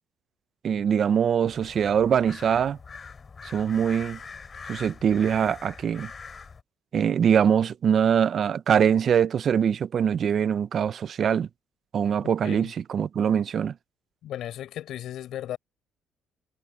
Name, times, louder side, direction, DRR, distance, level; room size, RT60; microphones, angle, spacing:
voice 1, 0.6-2.8 3.5-4.2 4.6-6.1 6.9-11.5 11.9-13.7, right 8 dB, 55° right, 0.9 m, -23 dB
sound 1, 1.4-6.6, left 5 dB, 35° left, 3.9 m, -43 dB
voice 2, 14.2-15.6, left 12 dB, 70° left, 6.8 m, -35 dB
cardioid pair, 85°, 0 cm